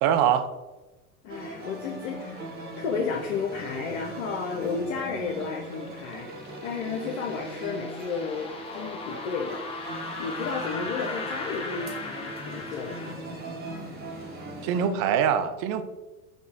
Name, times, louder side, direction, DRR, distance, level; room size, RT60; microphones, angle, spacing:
voice 1, 0.0-0.5 14.6-15.8, right 8 dB, 35° right, 8 dB, 0.4 m, -23 dB
voice 2, 1.2-2.5 2.8-9.6 10.2-13.2, left 5 dB, 60° left, 2 dB, 0.6 m, -32 dB
sound 1, 1.3-14.9, right 1 dB, 20° right, 1.0 m, -40 dB
sound 2, 5.4-13.1, left 3 dB, 15° left, 0.5 m, -38 dB
4.9 x 2.1 x 3.5 m, 1.1 s
figure-of-eight pair, 85°, 44 cm